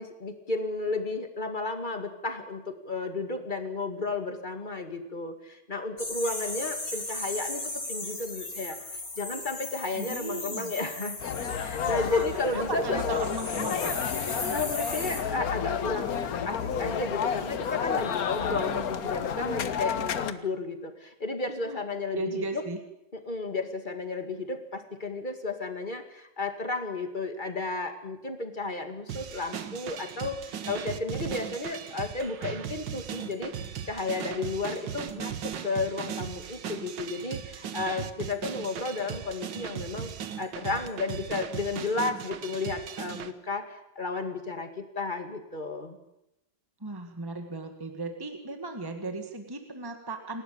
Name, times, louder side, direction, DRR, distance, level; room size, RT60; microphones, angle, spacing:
voice 1, 0.0-8.8 9.2-11.2 11.5-13.0 14.5-22.6 23.3-33.5 33.9-40.1 40.4-46.0, left 3 dB, 25° left, 7 dB, 2.2 m, -33 dB
sound 1, 6.0-12.7 12.9-15.2, left 2 dB, 75° left, 6.6 m, -37 dB
voice 2, 9.9-10.7 11.9-14.0 18.5-19.0 21.6-21.8 22.1-22.8 46.8-50.4, right 2 dB, 15° right, 5 dB, 1.8 m, -36 dB
sound 2, 11.2-20.3, left 7 dB, 60° left, 1.5 m, -31 dB
sound 3, 29.1-43.3, right 8 dB, 85° right, 1.8 m, -38 dB
28.0 x 12.5 x 8.8 m, 0.87 s
omnidirectional pair, 1.9 m